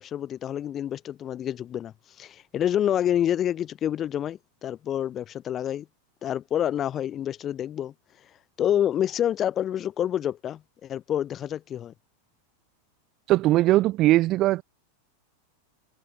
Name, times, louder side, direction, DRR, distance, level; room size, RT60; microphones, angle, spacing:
voice 1, 0.0-5.9 6.2-7.9 8.6-11.9, left 10 dB, 30° left, 4.2 m, -28 dB
voice 2, 13.3-14.6, right 16 dB, 35° right, 1.2 m, -20 dB
figure-of-eight pair, 90°, 0 cm